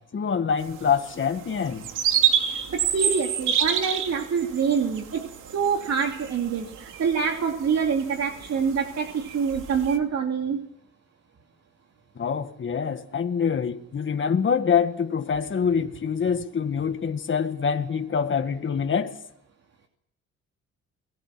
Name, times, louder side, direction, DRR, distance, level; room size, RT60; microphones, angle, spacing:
voice 1, 0.1-1.9 12.2-19.2, left 6 dB, 40° left, 1.8 m, -25 dB
sound 1, 0.6-10.0, right 9 dB, 85° right, 2.8 m, -29 dB
voice 2, 2.5-5.2 5.5-10.6, right 6 dB, 60° right, 2.9 m, -26 dB
29.0 x 19.5 x 6.1 m
cardioid pair, 90°, 30 cm